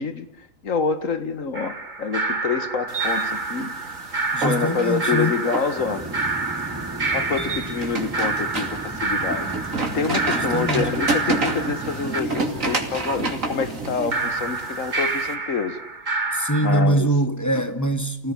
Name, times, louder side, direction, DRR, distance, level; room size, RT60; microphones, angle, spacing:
voice 1, 0.0-3.7 4.4-6.1 7.1-15.8 16.6-17.1, left 5 dB, 70° left, 2.0 m, -27 dB
sound 1, 1.5-12.2 14.1-16.9, right 3 dB, 35° right, 1.7 m, -28 dB
sound 2, 2.9-15.3, right 3 dB, 75° right, 3.1 m, -30 dB
voice 2, 4.3-5.4 10.3-10.9 16.3-18.3, right 1 dB, 15° left, 1.5 m, -23 dB
sound 3, 5.7-14.7, right 2 dB, 15° right, 1.2 m, -36 dB
29.0 x 18.0 x 9.9 m
omnidirectional pair, 1.4 m